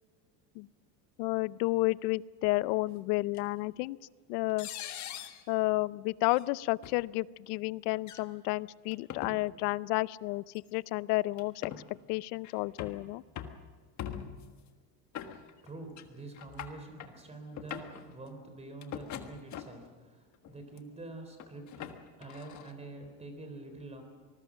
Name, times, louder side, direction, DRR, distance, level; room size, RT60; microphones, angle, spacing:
voice 1, 1.2-4.0 4.3-4.7 5.5-13.2, left 21 dB, 75° left, 19 dB, 0.7 m, -31 dB
sound 1, 3.3-3.4 4.6-5.4 6.3-6.4 6.8-7.0 8.0-8.2 8.9-9.4 10.5-10.7 11.4-11.8 12.4-13.0 13.4-13.6 14.0-14.5 15.1-15.7 16.0-16.1 16.3-17.1 17.5-18.0 18.8-19.9 20.4-20.8 21.4-22.7, left 10 dB, 35° left, 1.5 m, -42 dB
voice 2, 15.6-24.0, right 2 dB, 15° right, 6 dB, 3.8 m, -46 dB
26.0 x 20.0 x 6.4 m, 1.5 s
cardioid pair, 155°, 46 cm